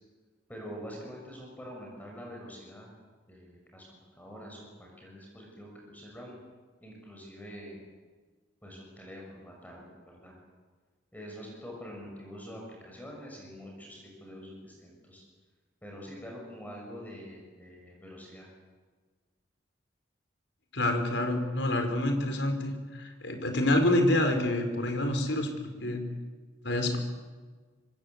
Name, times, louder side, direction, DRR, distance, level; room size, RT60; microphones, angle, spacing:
voice 1, 0.5-2.9 3.3-6.3 6.8-7.9 8.6-10.3 11.1-15.2 15.8-18.5, equal, 10° left, -1 dB, 6.6 m, -45 dB
voice 2, 20.7-25.5 25.8-26.0 26.6-27.0, left 1 dB, 70° left, 5 dB, 5.1 m, -27 dB
26.5 x 24.5 x 8.3 m, 1.4 s
head